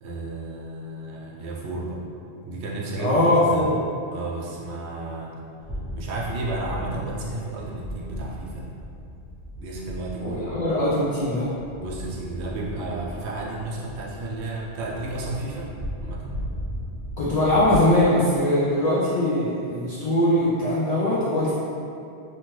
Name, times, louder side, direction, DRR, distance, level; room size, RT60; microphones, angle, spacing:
voice 1, 0.0-2.0 2.4-3.7 4.1-5.4 5.9-8.7 9.6-10.4 11.8-15.7 16.0-16.4, right 2 dB, 80° right, -4 dB, 0.8 m, -32 dB
voice 2, 3.0-3.8 10.2-11.5 17.2-21.5, left 1 dB, 60° left, -8 dB, 0.4 m, -21 dB
sound 1, 5.6-17.8, equal, 25° right, 0.6 m, -37 dB
2.9 x 2.2 x 3.0 m, 2.6 s
omnidirectional pair, 1.1 m